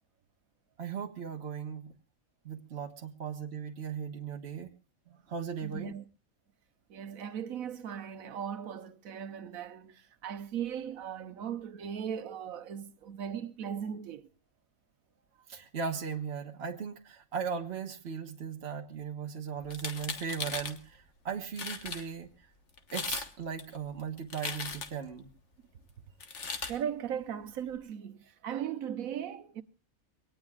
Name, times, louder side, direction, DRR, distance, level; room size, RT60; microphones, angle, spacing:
voice 1, 0.8-1.9 2.4-4.7 5.1-5.9 15.5-22.3 22.9-25.3, right 6 dB, 50° right, 1.4 m, -37 dB
voice 2, 5.6-6.0 6.9-14.2 26.6-29.6, right 8 dB, 90° right, 1.3 m, -38 dB
sound 1, 19.6-20.8 21.3-21.4 21.6-22.0 22.8-23.3 23.6-25.1 26.2-26.7, left 5 dB, 60° left, 1.6 m, -37 dB
23.5 x 18.5 x 2.4 m
omnidirectional pair, 1.4 m